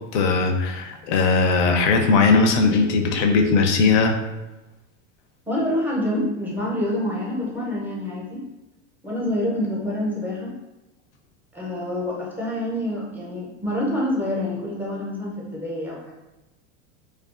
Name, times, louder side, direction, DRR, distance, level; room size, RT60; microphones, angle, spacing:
voice 1, 0.1-4.2, left 4 dB, 75° left, 3 dB, 0.5 m, -19 dB
voice 2, 5.5-8.5 9.0-10.5 11.5-16.1, left 1 dB, 5° right, -5 dB, 0.5 m, -27 dB
2.3 x 2.3 x 2.3 m, 1.0 s
supercardioid pair, 115°, 36 cm